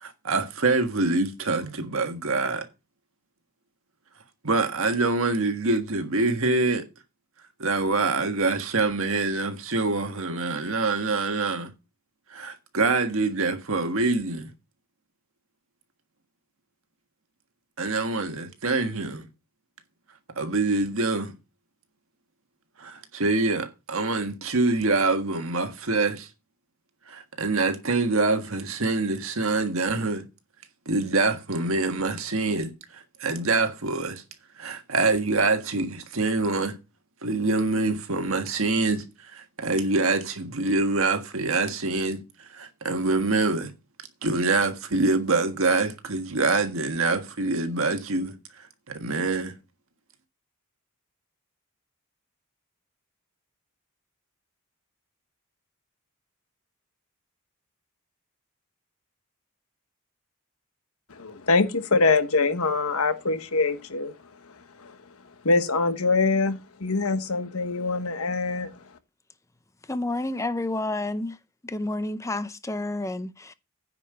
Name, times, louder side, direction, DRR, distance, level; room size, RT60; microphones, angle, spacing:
voice 1, 0.0-2.7 4.4-6.8 7.6-11.7 12.3-14.5 17.8-19.2 20.4-21.3 22.8-26.3 27.1-30.2 30.8-34.2 34.6-36.8 37.2-39.0 39.3-42.2 42.5-43.7 44.2-48.3 48.9-49.5, right 3 dB, 65° right, 1.6 m, -25 dB
voice 2, 61.1-64.1 64.8-64.9 65.4-68.7, left 3 dB, 75° left, 1.2 m, -24 dB
voice 3, 69.9-71.4 71.6-73.5, left 2 dB, 15° left, 0.6 m, -30 dB
9.8 x 5.4 x 6.6 m
head